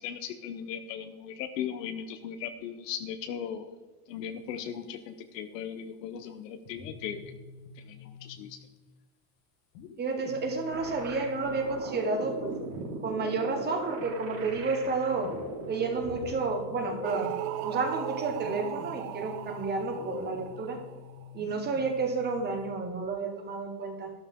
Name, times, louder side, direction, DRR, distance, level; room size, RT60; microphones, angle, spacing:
voice 1, 0.0-3.7 4.1-7.3 7.7-8.6, left 8 dB, 85° left, 8 dB, 1.1 m, -38 dB
sound 1, 6.7-8.8 9.7-22.7, left 6 dB, 65° left, 2.2 m, -46 dB
voice 2, 10.0-12.5 13.0-15.3 15.7-17.3 17.6-20.8 21.3-24.1, right 4 dB, 20° right, 4 dB, 1.3 m, -31 dB
sound 2, 10.7-16.3, right 4 dB, 90° right, 4.3 m, -40 dB
sound 3, 17.0-21.3, right 13 dB, 45° right, 0.7 m, -37 dB
12.5 x 11.0 x 3.7 m, 1.2 s
supercardioid pair, 155°, 48 cm